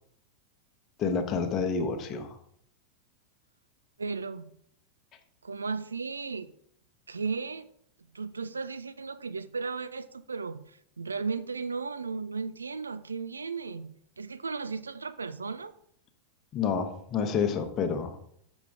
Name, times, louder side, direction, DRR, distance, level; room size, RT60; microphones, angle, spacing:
voice 1, 1.0-2.4 16.5-18.2, left 5 dB, 30° left, 7 dB, 1.0 m, -29 dB
voice 2, 4.0-4.5 5.4-6.5 7.1-7.7 8.1-15.7, right 4 dB, 75° right, 12 dB, 0.4 m, -35 dB
7.2 x 6.2 x 3.6 m, 0.68 s
figure-of-eight pair, 90°, 0 cm